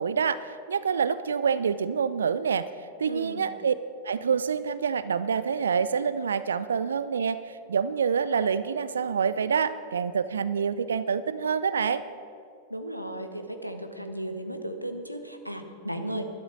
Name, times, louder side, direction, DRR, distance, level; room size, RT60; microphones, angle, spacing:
voice 1, 0.0-2.7 3.0-3.7 4.0-12.0, right 6 dB, 70° right, 15 dB, 0.4 m, -27 dB
voice 2, 3.1-3.4 12.7-16.2, right 1 dB, 90° right, 6 dB, 1.0 m, -35 dB
12.0 x 12.0 x 6.2 m, 2.5 s
figure-of-eight pair, 90°, 0 cm